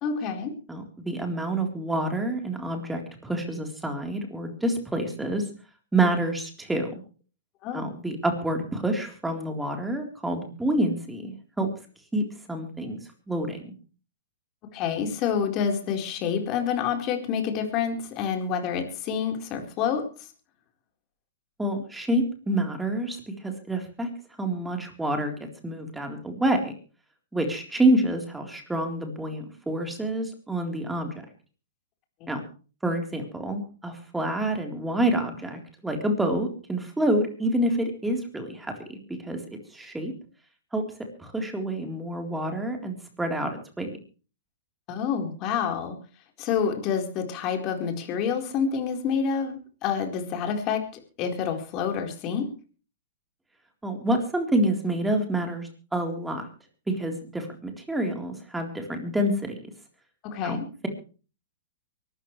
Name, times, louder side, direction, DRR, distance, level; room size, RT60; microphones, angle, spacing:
voice 1, 0.0-0.5 7.6-7.8 14.7-20.0 32.2-32.3 44.9-46.0 46.4-50.8 51.2-52.5 60.2-60.7, left 7 dB, 35° left, 4 dB, 4.3 m, -28 dB
voice 2, 0.7-5.4 5.9-7.0 7.7-11.7 12.1-13.0 13.3-13.7 21.6-23.2 23.4-24.1 24.4-25.4 25.6-26.7 27.3-31.3 32.3-32.4 32.8-39.4 39.7-40.1 40.7-40.8 41.2-44.0 53.8-56.5 56.9-59.6 60.4-60.6, right 1 dB, 5° right, 3 dB, 3.8 m, -27 dB
24.0 x 13.5 x 3.3 m, 0.37 s
hypercardioid pair, 140°, 0 cm